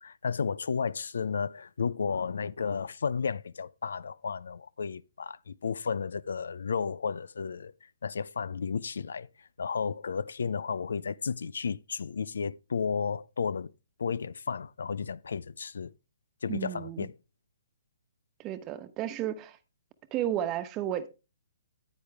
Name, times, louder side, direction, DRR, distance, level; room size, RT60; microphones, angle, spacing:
voice 1, 0.0-7.7 8.0-13.7 14.0-15.9 16.4-17.1, left 6 dB, 70° left, 0.5 m, -33 dB
voice 2, 16.5-17.1 18.4-19.6 20.1-21.1, right 11 dB, 25° right, 1.1 m, -33 dB
9.7 x 9.5 x 3.5 m
figure-of-eight pair, 130°, 0 cm